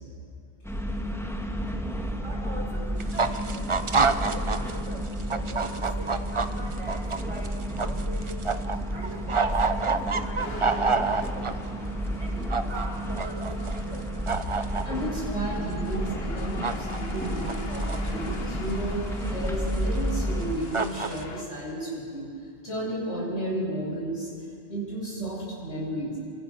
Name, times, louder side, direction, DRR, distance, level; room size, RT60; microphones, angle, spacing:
sound 1, 0.6-20.6, equal, ahead, 1.7 m, -31 dB
voice 1, 2.2-8.5 8.9-11.6 12.1-14.1, right 1 dB, 80° right, -1 dB, 5.3 m, -42 dB
sound 2, 3.0-4.8 5.1-8.8 9.0-11.5 12.2-12.9 13.2-14.0 14.3-14.8 16.6-17.0 17.2-18.2 18.7-18.8 19.8-19.9 20.4-20.5 20.7-21.2, right 4 dB, 30° right, 0.7 m, -27 dB
sound 3, 10.4-21.4, left 2 dB, 55° left, 1.8 m, -42 dB
voice 2, 14.8-22.3 22.6-24.3 24.7-26.2, right 1 dB, 75° left, -5 dB, 8.5 m, -32 dB
28.5 x 25.0 x 6.2 m, 2.3 s
omnidirectional pair, 1.2 m